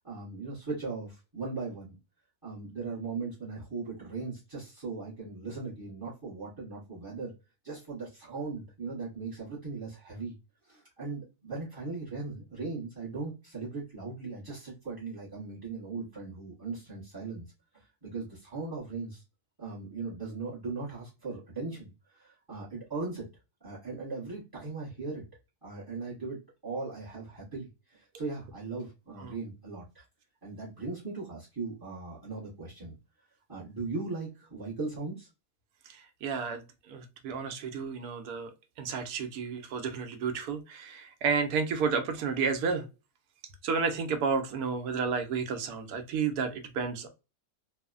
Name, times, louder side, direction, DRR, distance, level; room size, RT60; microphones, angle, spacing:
voice 1, 0.0-2.0 2.4-7.3 7.6-10.4 10.6-17.4 17.7-19.2 19.6-23.3 23.6-25.2 25.6-30.0 30.4-33.0 33.5-35.3, right 3 dB, 20° right, -8 dB, 0.6 m, -38 dB
voice 2, 35.9-38.5 38.8-42.9 43.6-47.1, right 5 dB, 80° right, 7 dB, 1.1 m, -31 dB
3.1 x 2.0 x 2.3 m, 0.28 s
omnidirectional pair, 1.7 m